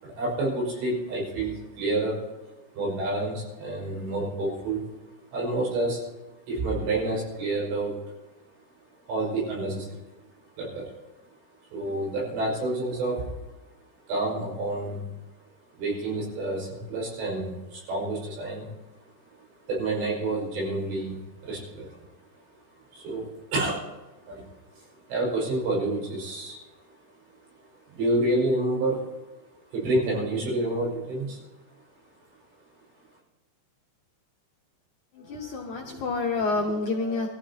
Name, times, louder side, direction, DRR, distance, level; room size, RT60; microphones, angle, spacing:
voice 1, 0.0-2.2 2.7-4.8 5.3-6.0 6.5-7.9 9.1-10.0 10.6-10.9 11.7-13.3 14.1-15.0 15.8-18.7 19.7-22.0 22.9-23.9 24.3-24.4 24.7-26.6 27.9-29.0 29.7-31.4, right 2 dB, 80° right, -4 dB, 7.8 m, -28 dB
voice 2, 35.1-37.3, left 3 dB, 75° left, 0 dB, 1.8 m, -28 dB
23.5 x 14.5 x 2.9 m, 1.1 s
omnidirectional pair, 5.1 m